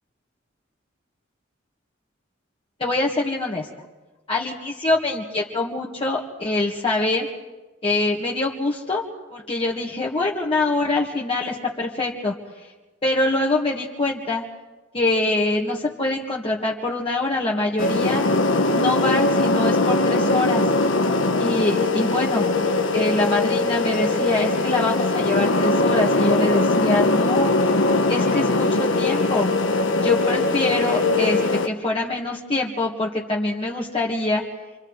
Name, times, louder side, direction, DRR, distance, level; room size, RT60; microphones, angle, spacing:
voice 1, 2.8-3.7 4.3-7.3 7.8-9.0 9.3-12.3 13.0-14.4 14.9-18.2 18.7-20.7 21.4-22.5 22.9-27.5 28.1-29.5 30.0-34.4, left 2 dB, 30° left, -3 dB, 2.0 m, -24 dB
sound 1, 17.8-31.7, left 2 dB, 80° left, 1.3 m, -21 dB
28.5 x 26.0 x 4.9 m, 1.2 s
head